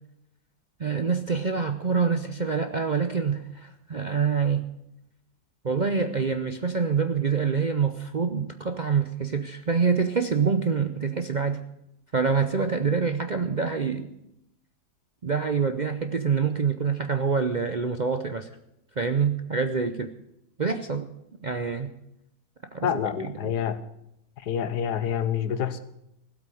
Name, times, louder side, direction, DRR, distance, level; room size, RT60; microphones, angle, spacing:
voice 1, 0.8-4.6 5.6-11.6 12.1-14.1 15.2-18.5 19.0-20.1 20.6-21.1 21.4-21.9 22.7-22.9 23.4-23.5, right 5 dB, 45° right, 8 dB, 0.6 m, -26 dB
voice 2, 22.8-23.8 24.4-25.8, left 8 dB, 85° left, 13 dB, 1.6 m, -27 dB
16.0 x 8.3 x 8.4 m, 0.83 s
omnidirectional pair, 1.7 m